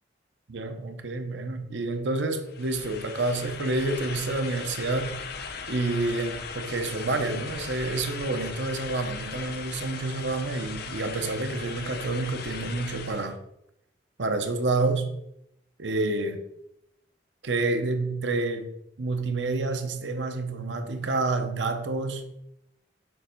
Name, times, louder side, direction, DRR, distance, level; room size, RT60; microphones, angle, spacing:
voice 1, 0.5-5.2 5.7-13.4 14.2-15.1 15.8-16.4 17.4-18.7 19.0-22.2, right 2 dB, 75° right, 0.8 m, -28 dB
sound 1, 2.5-13.3, left 5 dB, 60° left, 0.7 m, -38 dB
7.1 x 3.2 x 5.2 m
head